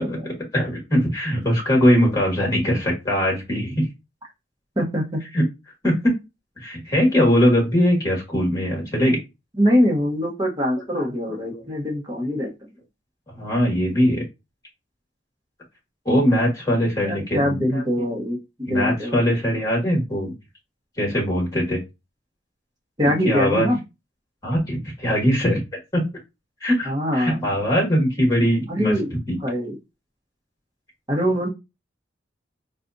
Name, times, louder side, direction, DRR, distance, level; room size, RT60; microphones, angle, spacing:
voice 1, 0.0-3.8 5.2-5.4 5.8-6.1 6.6-9.2 10.8-11.7 13.3-14.2 16.0-18.0 18.7-20.3 21.0-21.8 23.0-23.7 24.4-25.6 25.9-26.1 26.6-29.0 29.3-29.4, equal, 20° left, -1 dB, 1.6 m, -21 dB
voice 2, 4.8-5.2 9.6-12.5 17.0-19.3 23.0-23.8 26.8-27.4 28.7-29.1 29.4-29.8 31.1-31.5, equal, 20° right, -2 dB, 1.0 m, -23 dB
4.1 x 2.4 x 2.6 m, 0.24 s
head